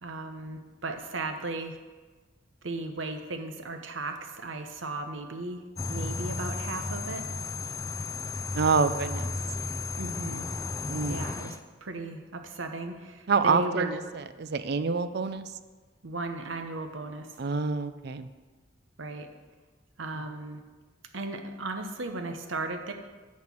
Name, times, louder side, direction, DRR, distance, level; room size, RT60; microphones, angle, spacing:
voice 1, 0.0-1.8 2.6-5.6 5.9-7.3 10.0-10.5 11.1-13.9 16.0-17.3 19.0-19.3 20.0-20.6 21.1-22.9, right 2 dB, 85° right, 6 dB, 1.0 m, -36 dB
sound 1, 5.8-11.6, left 3 dB, 15° left, 0.4 m, -34 dB
voice 2, 8.5-9.3 10.9-11.2 13.3-14.0 14.4-15.5 17.4-18.3, right 5 dB, 55° right, 12 dB, 0.5 m, -27 dB
9.5 x 4.4 x 7.3 m, 1.3 s
head